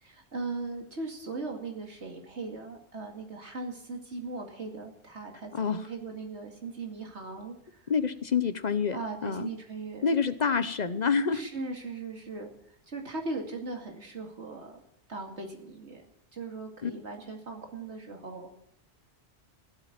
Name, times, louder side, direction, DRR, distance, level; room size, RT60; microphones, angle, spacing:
voice 1, 0.0-7.9 8.9-10.1 11.3-12.5 12.9-14.8 15.1-16.0 16.3-18.5, right 3 dB, 75° right, 1 dB, 2.7 m, -39 dB
voice 2, 7.9-9.5 10.0-11.4 16.8-16.9, left 5 dB, 45° left, 12 dB, 0.8 m, -27 dB
15.5 x 8.5 x 8.8 m, 0.74 s
omnidirectional pair, 1.2 m